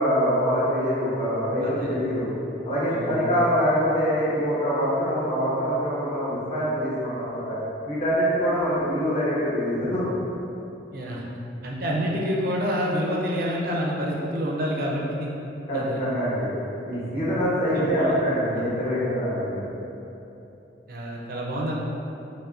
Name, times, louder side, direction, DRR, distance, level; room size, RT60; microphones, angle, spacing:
voice 1, 0.0-2.3 2.6-7.5 7.8-10.1 15.7-16.5 16.8-19.7, equal, 35° left, -9 dB, 1.0 m, -24 dB
voice 2, 1.6-1.9 2.9-3.2 10.9-11.2 11.6-15.3 15.7-16.0 16.9-17.3 17.7-18.2 18.5-18.7 20.9-21.7, equal, 55° right, -3 dB, 0.5 m, -28 dB
5.4 x 2.1 x 2.5 m, 2.9 s
head